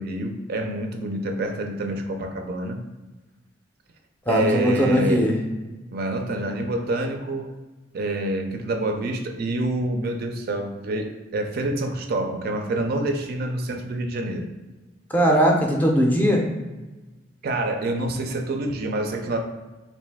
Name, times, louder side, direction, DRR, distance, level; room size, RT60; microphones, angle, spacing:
voice 1, 0.0-2.8 4.3-5.3 5.9-7.5 7.9-14.5 17.4-19.4, right 1 dB, 50° right, 4 dB, 0.4 m, -27 dB
voice 2, 4.3-5.3 15.1-16.4, equal, 10° left, 0 dB, 0.5 m, -19 dB
3.1 x 2.5 x 3.4 m, 1.1 s
head